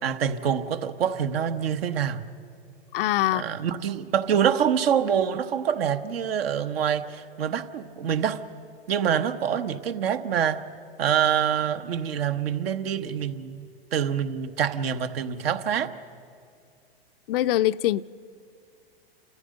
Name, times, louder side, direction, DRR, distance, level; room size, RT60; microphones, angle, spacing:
voice 1, 0.0-2.2 3.3-8.4 8.9-10.6 11.0-13.7 13.9-15.9, right 8 dB, 70° right, 9 dB, 1.2 m, -26 dB
voice 2, 2.9-3.4 17.3-18.0, left 14 dB, 65° left, 15 dB, 0.5 m, -23 dB
29.0 x 14.5 x 6.5 m, 2.4 s
hypercardioid pair, 110°, 31 cm